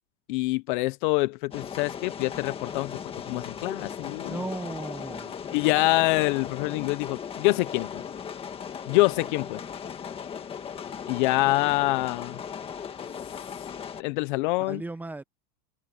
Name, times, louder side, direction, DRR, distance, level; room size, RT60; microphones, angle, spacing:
voice 1, 0.3-2.9 3.3-4.4 5.5-8.0 8.9-9.6 11.1-12.4 14.0-14.8, left 21 dB, 45° left, 0.5 m, -25 dB
sound 1, 1.5-14.0, left 7 dB, 15° left, 1.7 m, -37 dB
voice 2, 4.3-5.4 14.6-15.2, right 2 dB, 5° right, 0.8 m, -36 dB
supercardioid pair, 175°, 34 cm